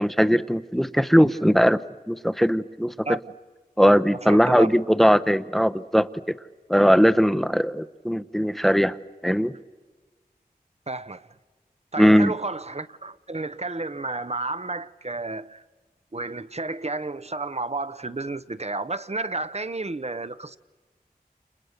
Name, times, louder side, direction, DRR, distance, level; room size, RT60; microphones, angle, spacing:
voice 1, 0.0-1.8 2.1-3.1 3.8-6.4 6.7-9.0 9.2-9.5 12.0-12.3, equal, ahead, 0.9 m, -19 dB
voice 2, 4.2-4.7 10.9-11.3 11.9-15.6 16.1-20.6, right 3 dB, 40° right, 1.0 m, -31 dB
30.0 x 29.5 x 6.7 m
wide cardioid pair, 40°, 16 cm